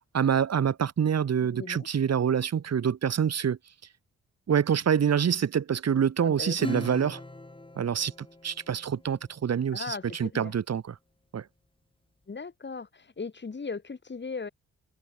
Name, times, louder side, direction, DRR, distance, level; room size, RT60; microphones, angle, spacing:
voice 1, 0.1-3.6 4.5-7.2 7.8-10.8 11.3-11.4, right 8 dB, 55° right, 2.0 m, -26 dB
voice 2, 1.5-1.9 6.2-6.7 9.7-10.5 12.3-14.5, left 4 dB, 35° left, 3.0 m, -38 dB
Acoustic guitar / Strum, 6.6-9.5, left 2 dB, 15° left, 4.2 m, -39 dB
supercardioid pair, 50°, 32 cm